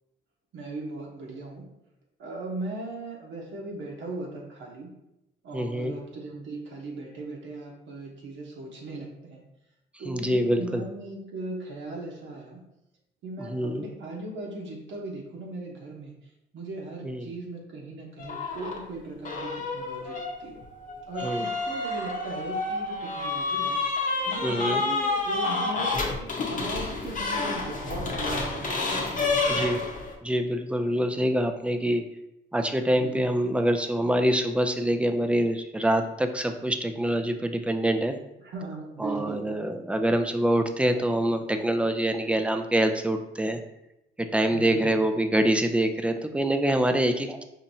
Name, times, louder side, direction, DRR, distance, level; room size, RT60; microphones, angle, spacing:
voice 1, 0.5-1.6 2.2-4.9 5.4-9.4 10.0-12.6 13.2-16.1 16.5-20.6 21.1-29.6 33.0-33.2 38.4-39.4 44.5-44.9, right 2 dB, 70° right, -2 dB, 0.9 m, -38 dB
voice 2, 5.5-5.9 10.0-10.8 13.4-13.9 17.0-17.3 21.2-21.5 24.4-24.8 29.5-29.8 30.2-32.0 32.5-38.2 39.0-43.6 44.2-47.4, right 1 dB, 5° right, 6 dB, 0.3 m, -25 dB
sound 1, 18.2-18.8 19.3-30.1, left 3 dB, 40° left, 0.8 m, -29 dB
4.6 x 2.8 x 2.7 m, 0.87 s
cardioid pair, 90°, 20 cm